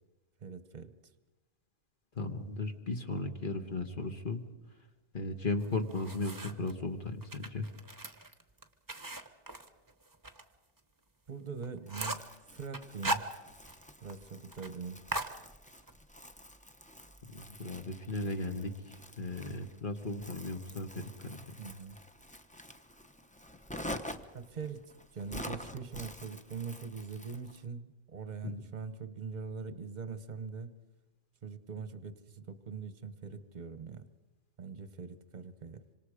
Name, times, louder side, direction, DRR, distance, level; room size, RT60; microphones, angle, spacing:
voice 1, 0.4-0.9 11.3-12.2 12.5-13.3 14.0-15.0 21.6-22.0 24.3-24.8 25.1-30.8 31.4-34.1 34.6-35.8, right 5 dB, 40° right, 12 dB, 1.1 m, -42 dB
voice 2, 2.1-4.5 5.1-7.7 17.3-18.7 19.2-21.5 28.4-28.5, left 2 dB, 40° left, 6 dB, 1.5 m, -36 dB
sound 1, 5.6-6.7 7.2-10.4 10.8-10.9 11.3-11.4 11.6-12.3 12.7-13.8 14.1-14.2 14.5-14.7 15.1-16.0, right 1 dB, 15° right, 1.0 m, -38 dB
Crumpling crinkling, 11.9-27.7, left 1 dB, 5° left, 0.7 m, -48 dB
26.5 x 25.5 x 5.0 m, 1.1 s
omnidirectional pair, 1.3 m